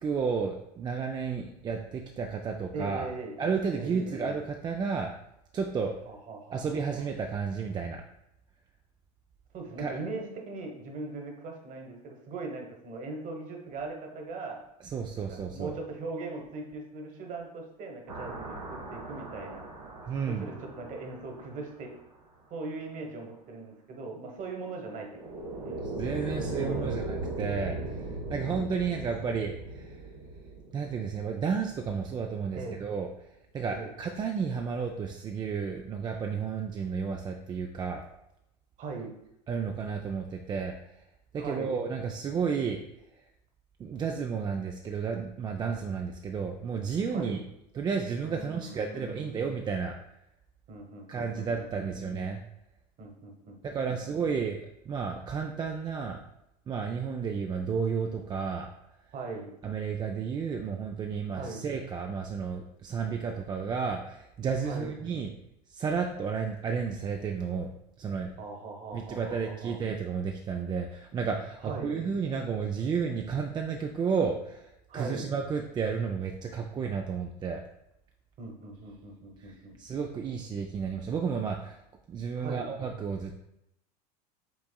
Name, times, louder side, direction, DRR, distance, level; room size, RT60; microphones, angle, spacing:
voice 1, 0.0-3.1 3.4-5.1 5.5-5.9 6.5-8.0 9.8-10.0 14.9-15.7 20.0-20.5 26.0-28.0 28.3-30.0 30.7-33.1 33.5-38.0 39.5-40.7 41.3-42.8 43.8-47.4 47.7-49.9 51.1-52.4 53.7-56.2 56.7-58.7 59.6-65.3 65.7-67.7 68.0-68.3 68.9-77.6 79.4-79.5 79.8-81.8 82.1-83.4, right 6 dB, 20° right, 2 dB, 0.3 m, -32 dB
voice 2, 2.7-3.3 3.7-4.3 6.0-6.6 6.9-7.0 9.5-14.6 15.1-19.6 20.3-21.9 22.5-26.0 26.3-27.0 32.5-32.8 33.7-33.9 38.8-39.1 41.4-41.7 47.1-47.4 48.2-49.4 50.7-52.1 53.0-53.6 53.9-54.0 59.1-59.5 61.3-61.6 64.6-65.0 68.4-69.7 71.6-71.9 74.9-75.3 78.4-79.8 82.4-82.7, right 3 dB, 40° right, 2 dB, 1.2 m, -40 dB
sound 1, 18.1-22.0 25.0-32.2, right 2 dB, 90° right, 1.2 m, -38 dB
6.0 x 3.5 x 2.2 m, 0.82 s
hypercardioid pair, 100°, 21 cm